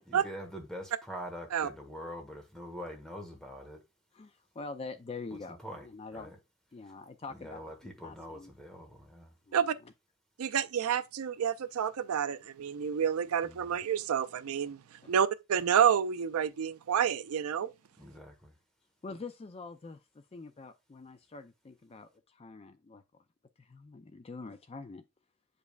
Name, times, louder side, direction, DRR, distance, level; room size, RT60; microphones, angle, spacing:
voice 1, 0.1-3.8 5.3-5.9 6.1-6.4 7.3-9.3 13.4-13.8 18.0-18.5, equal, 5° left, 1.2 m, -44 dB
voice 2, 4.1-6.3 6.7-8.5 9.5-9.9 15.0-15.1 19.0-23.0 23.6-25.0, left 3 dB, 25° left, 0.4 m, -45 dB
voice 3, 10.4-17.7, right 8 dB, 85° right, 0.4 m, -29 dB
8.0 x 5.2 x 2.4 m
head